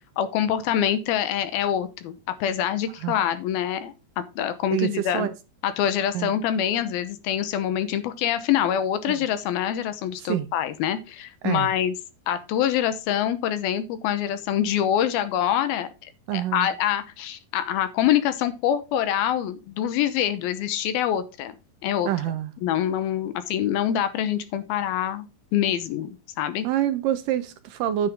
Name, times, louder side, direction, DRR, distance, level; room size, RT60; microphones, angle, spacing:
voice 1, 0.2-2.1 2.4-5.3 5.6-11.9 12.3-15.9 16.3-21.5 21.8-22.1 22.6-25.3 25.5-26.1 26.4-26.7, left 10 dB, 80° left, 2.8 m, -25 dB
voice 2, 4.7-5.3 6.1-6.3 9.1-9.2 10.3-10.5 11.4-11.7 16.3-16.7 22.1-22.5 26.6-28.1, right 11 dB, 75° right, 2.2 m, -26 dB
9.4 x 8.1 x 3.5 m
omnidirectional pair, 4.3 m